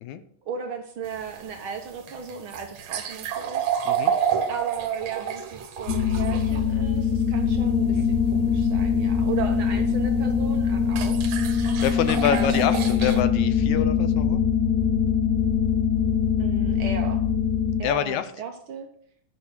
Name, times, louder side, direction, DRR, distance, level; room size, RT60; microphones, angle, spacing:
voice 1, 0.4-3.7 4.5-11.2 12.2-12.7 16.4-17.2 17.8-18.9, right 6 dB, 85° right, 4 dB, 1.1 m, -35 dB
sound 1, 1.0-6.6 9.7-9.8 10.9-13.2, right 8 dB, 65° right, 1.8 m, -29 dB
sound 2, 5.9-17.8, left 7 dB, 60° left, 2.4 m, -23 dB
voice 2, 11.6-14.4 17.8-18.3, left 9 dB, 80° left, 11 dB, 1.7 m, -26 dB
11.0 x 5.9 x 6.4 m, 0.63 s
omnidirectional pair, 3.9 m